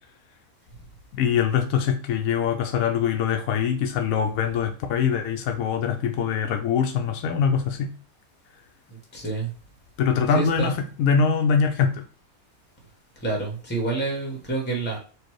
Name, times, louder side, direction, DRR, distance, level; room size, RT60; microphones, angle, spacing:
voice 1, 1.1-7.9 10.0-12.0, left 7 dB, 75° left, 4 dB, 1.0 m, -23 dB
voice 2, 9.1-9.5 10.3-10.7 13.2-15.0, right 3 dB, 10° left, 0 dB, 0.9 m, -28 dB
4.6 x 2.5 x 4.5 m, 0.39 s
omnidirectional pair, 1.5 m